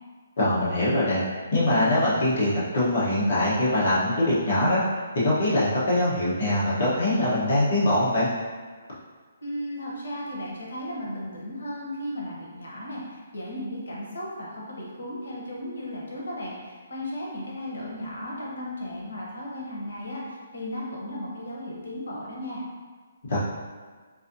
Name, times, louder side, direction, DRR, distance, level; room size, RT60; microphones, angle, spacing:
voice 1, 0.4-1.2 1.5-4.8 5.1-8.3 23.3-23.4, left 1 dB, 40° left, -8 dB, 1.1 m, -23 dB
voice 2, 9.4-22.6, left 1 dB, 85° left, -3 dB, 0.9 m, -35 dB
4.1 x 2.7 x 2.6 m, 1.6 s
hypercardioid pair, 180°, 0 cm